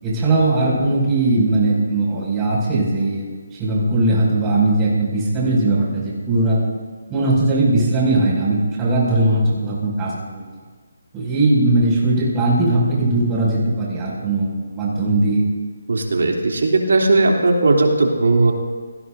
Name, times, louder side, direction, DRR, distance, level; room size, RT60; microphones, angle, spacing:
voice 1, 0.0-6.6 7.1-10.4 11.1-15.4, right 2 dB, 15° right, -7 dB, 6.1 m, -19 dB
voice 2, 15.9-18.5, right 2 dB, 70° right, 1 dB, 2.9 m, -17 dB
28.5 x 19.0 x 2.7 m, 1.5 s
figure-of-eight pair, 150°, 0 cm